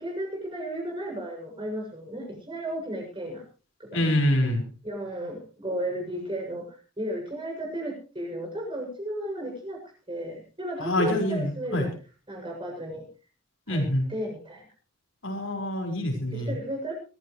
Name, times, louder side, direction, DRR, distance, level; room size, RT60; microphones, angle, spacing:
voice 1, 0.0-3.4 3.9-4.1 4.8-6.7 7.0-9.8 10.1-11.9 12.3-13.0 13.7-14.6 16.3-16.9, right 1 dB, 25° right, -1 dB, 7.4 m, -34 dB
voice 2, 3.9-4.6 10.8-11.9 13.7-14.1 15.2-16.6, left 1 dB, 75° left, 3 dB, 5.1 m, -26 dB
24.0 x 15.5 x 3.2 m, 0.35 s
head